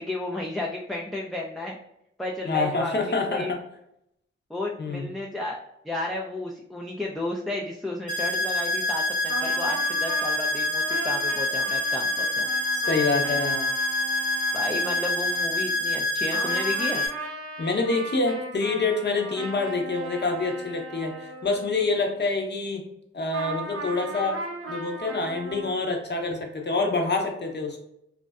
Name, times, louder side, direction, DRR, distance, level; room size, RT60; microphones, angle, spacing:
voice 1, 0.0-1.8 2.2-3.5 4.5-5.6 5.8-12.5 14.5-17.0, left 1 dB, ahead, -2 dB, 0.3 m, -33 dB
voice 2, 2.4-3.6 4.8-5.1 12.9-13.7 17.6-22.8 23.1-24.4 24.7-27.8, left 3 dB, 35° left, 2 dB, 0.7 m, -26 dB
sound 1, 8.1-17.1, left 1 dB, 85° left, 0.8 m, -26 dB
sound 2, 9.3-16.1 16.3-22.2 23.3-25.7, right 2 dB, 50° right, 0.6 m, -38 dB
2.4 x 2.1 x 2.3 m, 0.78 s
supercardioid pair, 45°, 29 cm